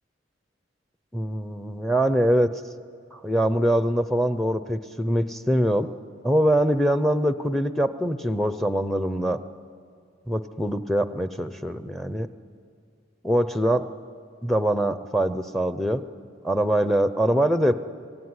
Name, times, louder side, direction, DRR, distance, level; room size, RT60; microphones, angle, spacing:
voice 1, 1.1-2.5 3.1-5.9 6.2-9.4 10.3-12.3 13.2-13.9 14.4-16.0 16.4-17.7, right 1 dB, ahead, 11 dB, 0.6 m, -23 dB
26.0 x 17.0 x 9.6 m, 2.3 s
head